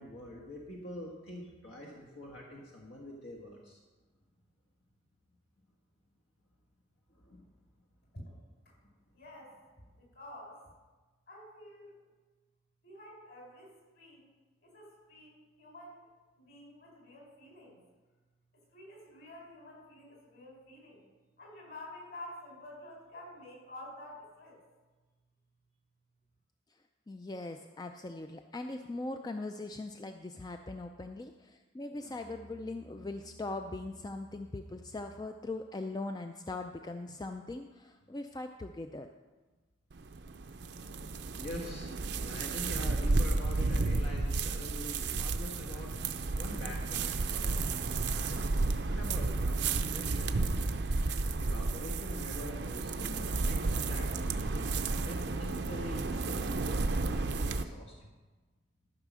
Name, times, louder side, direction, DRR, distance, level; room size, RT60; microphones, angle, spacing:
voice 1, 0.0-3.8 7.1-7.4 41.4-45.9 46.3-48.5 48.9-50.9 51.4-58.1, left 1 dB, 80° left, -2 dB, 1.6 m, -45 dB
voice 2, 9.1-9.6 10.0-10.6 11.3-12.0 12.8-14.3 14.6-16.0 16.4-17.8 18.5-21.0 21.4-24.6, left 1 dB, 55° left, -2 dB, 4.2 m, -50 dB
voice 3, 27.1-39.1, left 2 dB, 20° left, 6 dB, 0.3 m, -40 dB
Musical instrument, 32.0-35.5, right 1 dB, 5° left, 0.7 m, -56 dB
sound 1, 39.9-57.6, right 3 dB, 55° right, 0.5 m, -32 dB
13.5 x 5.5 x 6.2 m, 1.3 s
head